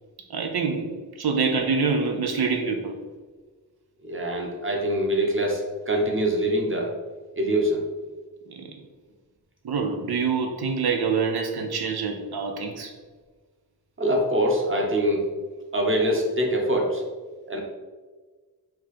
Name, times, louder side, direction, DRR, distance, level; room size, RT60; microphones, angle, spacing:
voice 1, 0.3-2.9 8.5-8.7 9.6-12.9, right 5 dB, 85° right, 3 dB, 0.5 m, -26 dB
voice 2, 4.0-6.9 7.4-7.8 14.0-15.3 15.7-17.0 17.5-17.6, right 1 dB, 35° right, 0 dB, 0.9 m, -24 dB
4.4 x 2.4 x 4.1 m, 1.4 s
wide cardioid pair, 55°, 37 cm